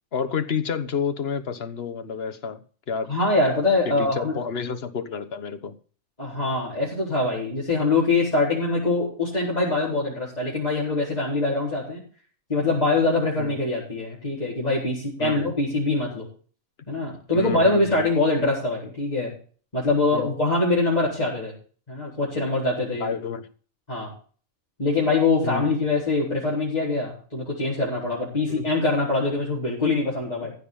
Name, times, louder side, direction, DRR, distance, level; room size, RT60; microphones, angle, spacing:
voice 1, 0.1-2.6 2.9-3.1 3.9-5.8 13.4-13.5 15.2-15.4 17.3-18.1 20.1-20.3 23.0-23.4 25.4-25.7 28.5-28.6, left 6 dB, 50° left, 1.4 m, -30 dB
voice 2, 3.1-4.3 6.2-12.0 12.5-16.3 16.9-19.3 19.7-21.5 21.9-23.1 23.9-24.1 24.8-30.5, left 2 dB, 30° left, 4.5 m, -23 dB
15.0 x 5.6 x 8.7 m
omnidirectional pair, 1.4 m